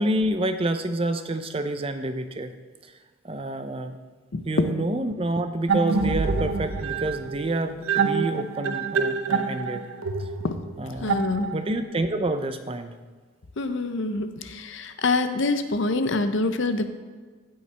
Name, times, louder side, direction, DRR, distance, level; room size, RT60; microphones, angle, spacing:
voice 1, 0.0-2.5 2.8-3.0 3.2-4.0 4.4-9.8 10.2-10.3 10.8-11.2 11.5-12.9, right 1 dB, 25° right, 8 dB, 0.5 m, -28 dB
voice 2, 4.3-4.7 10.4-10.6 11.0-11.5 13.6-16.9, left 3 dB, 60° left, 9 dB, 0.6 m, -25 dB
sound 1, 5.7-11.9, right 5 dB, 80° right, 0.7 m, -26 dB
16.0 x 5.5 x 3.3 m, 1.5 s
head